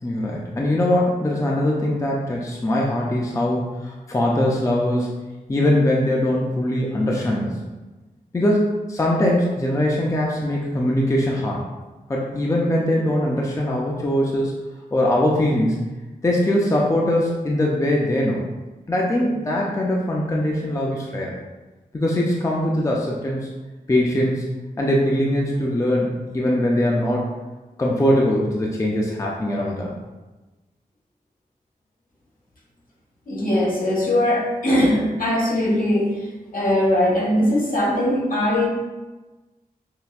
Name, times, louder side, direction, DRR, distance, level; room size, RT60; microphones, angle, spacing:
voice 1, 0.0-5.2 5.5-7.6 8.3-11.6 12.1-14.5 14.9-15.8 16.2-18.5 18.9-21.3 21.9-23.5 23.9-24.5 24.8-27.3 27.8-29.9, left 1 dB, 20° left, -3 dB, 0.4 m, -21 dB
voice 2, 33.3-38.7, left 1 dB, 65° left, -4 dB, 1.0 m, -20 dB
5.5 x 2.1 x 2.4 m, 1.1 s
wide cardioid pair, 105°, 15 cm